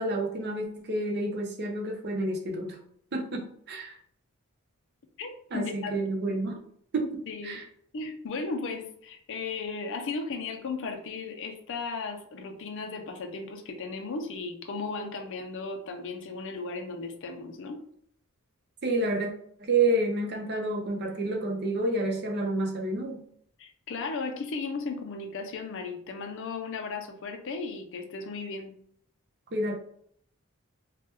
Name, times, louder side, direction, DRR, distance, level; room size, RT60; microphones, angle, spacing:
voice 1, 0.0-2.8 3.1-4.0 5.5-6.6 6.9-7.7 18.8-19.3 19.6-23.2 29.5-29.7, right 2 dB, 50° right, 2 dB, 0.6 m, -29 dB
voice 2, 5.2-5.9 7.3-7.6 7.9-17.8 23.6-28.7, left 4 dB, 60° left, 4 dB, 0.4 m, -36 dB
3.2 x 2.1 x 2.9 m, 0.65 s
head